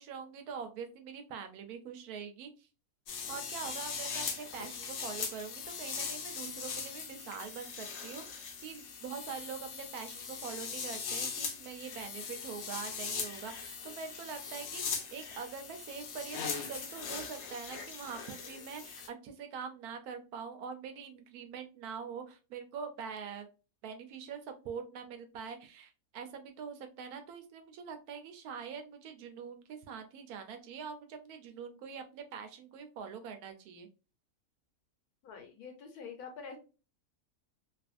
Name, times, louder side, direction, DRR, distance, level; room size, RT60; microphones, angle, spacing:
voice 1, 0.0-2.5 3.3-23.5 23.8-33.9, right 6 dB, 90° right, 7 dB, 1.1 m, -44 dB
sound 1, 3.1-19.1, left 6 dB, 60° left, 0.7 m, -40 dB
voice 2, 35.2-36.6, left 5 dB, 85° left, 5 dB, 1.3 m, -46 dB
2.9 x 2.5 x 2.4 m, 0.33 s
omnidirectional pair, 1.6 m